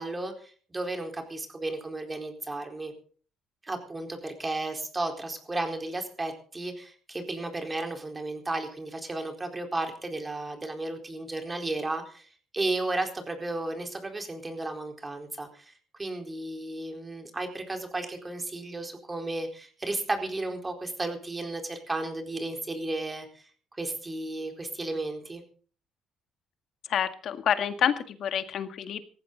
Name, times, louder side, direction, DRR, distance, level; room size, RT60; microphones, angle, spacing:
voice 1, 0.0-2.9 3.6-12.3 12.5-15.7 16.0-23.4 23.8-25.4, right 2 dB, 20° right, 4 dB, 4.2 m, -34 dB
voice 2, 26.9-29.0, left 9 dB, 60° left, 9 dB, 1.8 m, -28 dB
18.0 x 15.0 x 4.0 m, 0.43 s
cardioid pair, 95°, 0 cm